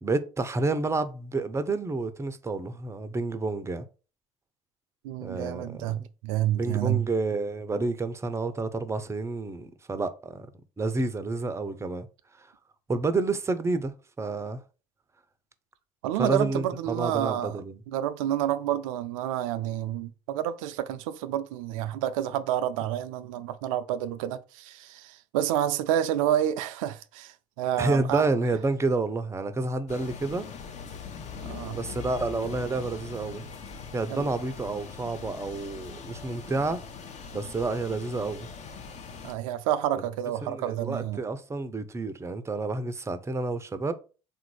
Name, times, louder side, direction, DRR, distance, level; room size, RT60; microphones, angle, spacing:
voice 1, 0.0-3.8 5.2-6.1 6.6-10.5 10.8-12.1 12.4-12.5 12.9-14.6 16.2-17.8 27.8-30.5 31.7-33.4 33.9-36.8 37.3-38.5 40.4-43.9, right 3 dB, 15° right, 0.6 m, -29 dB
voice 2, 5.0-7.1 16.0-17.6 17.9-28.2 31.4-31.8 34.1-34.3 39.2-41.2, right 11 dB, 65° right, 0.4 m, -29 dB
sound 1, 29.9-39.3, left 6 dB, 40° left, 0.8 m, -41 dB
3.7 x 2.5 x 4.6 m
hypercardioid pair, 70°, 18 cm